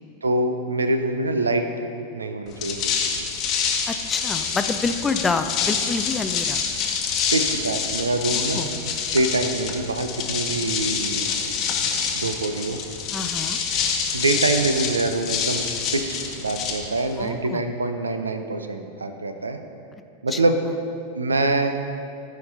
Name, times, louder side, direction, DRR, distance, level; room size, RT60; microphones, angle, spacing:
voice 1, 0.2-1.7 2.1-3.2 7.3-11.5 12.1-12.8 14.1-15.7 15.9-19.6 20.2-20.6 21.1-21.8, right 2 dB, 75° right, 7 dB, 0.6 m, -25 dB
sound 1, 2.5-17.3, left 6 dB, 35° left, 1.0 m, -26 dB
voice 2, 3.9-6.6 8.3-8.7 13.1-13.6 17.2-17.6 20.3-20.4, left 4 dB, 15° left, 8 dB, 0.4 m, -27 dB
14.0 x 5.2 x 3.9 m, 2.6 s
figure-of-eight pair, 90°, 0 cm